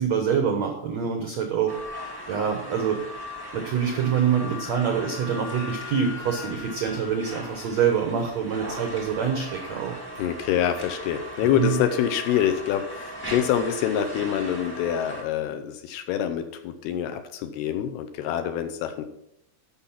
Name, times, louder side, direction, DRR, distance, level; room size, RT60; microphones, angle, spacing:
voice 1, 0.0-1.7 2.3-3.0 3.5-9.9 11.5-11.7, right 7 dB, 80° right, 3 dB, 1.6 m, -25 dB
sound 1, 1.7-15.2, equal, 35° right, 0.3 m, -38 dB
Wind instrument woodwind instrument, 3.8-8.0, left 7 dB, 60° left, 1.7 m, -43 dB
voice 2, 10.2-19.0, left 10 dB, 80° left, 7 dB, 2.5 m, -26 dB
12.5 x 5.7 x 5.8 m, 0.78 s
omnidirectional pair, 4.9 m